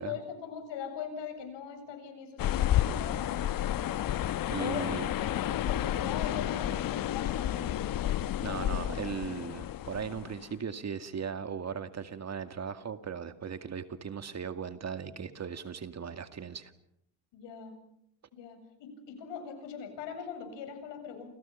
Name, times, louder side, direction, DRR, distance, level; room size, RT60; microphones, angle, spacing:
voice 1, 0.0-3.9 4.6-7.9 8.4-9.0 17.3-17.8 18.3-21.3, left 7 dB, 60° left, 7 dB, 7.8 m, -41 dB
sound 1, 2.4-10.5, left 12 dB, 45° left, 1.1 m, -31 dB
voice 2, 4.5-5.1 8.4-16.7, right 7 dB, 35° right, 9 dB, 2.3 m, -38 dB
29.5 x 28.0 x 5.8 m, 0.72 s
hypercardioid pair, 75°, 48 cm